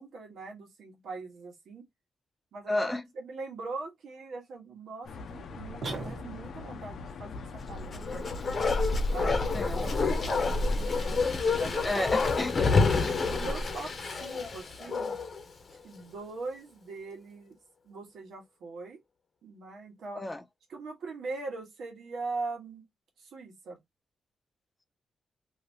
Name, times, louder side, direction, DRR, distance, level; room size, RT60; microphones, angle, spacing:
voice 1, 0.0-1.9 2.5-8.4 9.1-11.2 11.6-12.1 13.2-15.2 15.8-17.6 17.8-19.0 19.4-20.2 20.7-22.8 23.2-23.8, right 3 dB, 85° right, 1.3 m, -41 dB
voice 2, 2.7-3.0 9.2-9.8 11.8-12.7 20.1-20.4, left 2 dB, 15° left, 0.4 m, -32 dB
sound 1, 5.0-11.7, left 3 dB, 75° left, 0.6 m, -40 dB
sound 2, 5.8-6.7, right 3 dB, 50° right, 1.0 m, -38 dB
Bark, 7.8-15.4 15.7-15.8, left 4 dB, 45° left, 0.8 m, -28 dB
3.2 x 2.8 x 2.6 m
cardioid pair, 115°, 0 cm